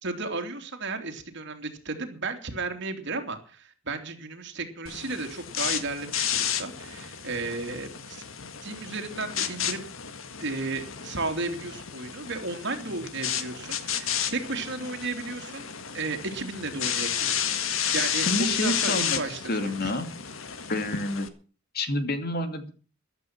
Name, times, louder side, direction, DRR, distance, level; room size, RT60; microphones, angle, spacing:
voice 1, 0.0-8.2 8.6-9.9 10.4-15.6 15.9-19.9, right 3 dB, 60° right, 5 dB, 3.1 m, -34 dB
sound 1, 4.9-21.3, left 8 dB, 80° left, 1.8 m, -32 dB
voice 2, 18.3-19.2 19.5-20.1 20.7-21.3 21.7-22.7, left 1 dB, 50° left, 8 dB, 2.5 m, -28 dB
14.5 x 12.0 x 6.1 m, 0.39 s
head